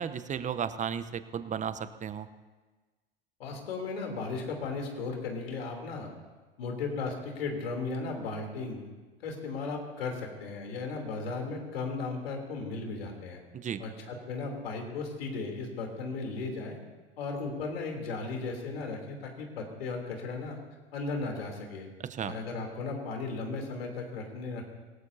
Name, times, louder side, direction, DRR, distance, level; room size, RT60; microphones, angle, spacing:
voice 1, 0.0-2.3 13.5-13.8 22.1-22.3, right 8 dB, 25° right, 12 dB, 0.9 m, -34 dB
voice 2, 3.4-6.1 6.6-8.8 9.2-13.4 13.8-16.8 17.2-20.6 20.9-21.9 22.3-24.6, left 3 dB, 75° left, 2 dB, 3.3 m, -36 dB
26.0 x 18.0 x 2.8 m, 1.3 s
hypercardioid pair, 85°, 30 cm